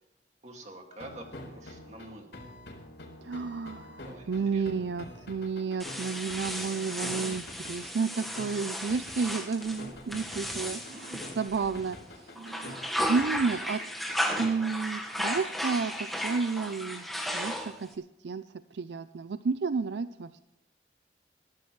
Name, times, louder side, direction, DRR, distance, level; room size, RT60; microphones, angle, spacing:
voice 1, 0.4-2.3 4.0-4.6, right 1 dB, 40° right, 3 dB, 2.3 m, -47 dB
sound 1, 0.9-14.4, left 1 dB, 85° left, 4.3 m, -46 dB
voice 2, 3.2-12.0 12.3-13.8 14.4-17.1 17.3-18.4 18.7-20.4, right 5 dB, 80° right, 13 dB, 0.4 m, -31 dB
sound 2, 5.8-12.0 12.4-17.9, equal, ahead, 1.5 m, -35 dB
22.0 x 12.0 x 3.3 m, 0.84 s
head